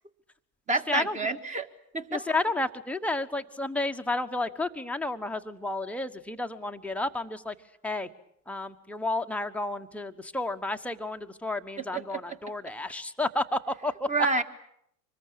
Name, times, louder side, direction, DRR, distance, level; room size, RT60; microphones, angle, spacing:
voice 1, 0.7-1.7 1.9-2.2 11.9-12.2 14.1-14.4, right 3 dB, 15° right, 9 dB, 1.8 m, -28 dB
voice 2, 2.1-7.5 7.8-8.1 8.5-14.1, left 2 dB, 5° left, 6 dB, 1.2 m, -31 dB
25.5 x 20.5 x 8.6 m, 0.73 s
hypercardioid pair, 100°, 50 cm